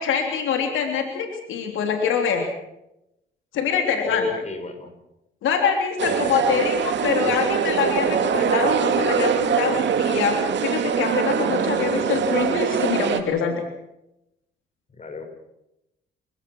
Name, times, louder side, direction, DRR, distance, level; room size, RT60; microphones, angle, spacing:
voice 1, 0.0-2.5 3.5-4.3 5.4-10.4 10.6-13.5, left 6 dB, 80° left, 4 dB, 3.3 m, -24 dB
voice 2, 4.0-4.9 6.0-6.7 7.2-7.3 15.0-15.2, left 3 dB, 35° left, 6 dB, 6.0 m, -32 dB
sound 1, 6.0-13.2, right 7 dB, 65° right, 2.3 m, -23 dB
30.0 x 17.0 x 6.3 m, 0.85 s
cardioid pair, 90°, 20 cm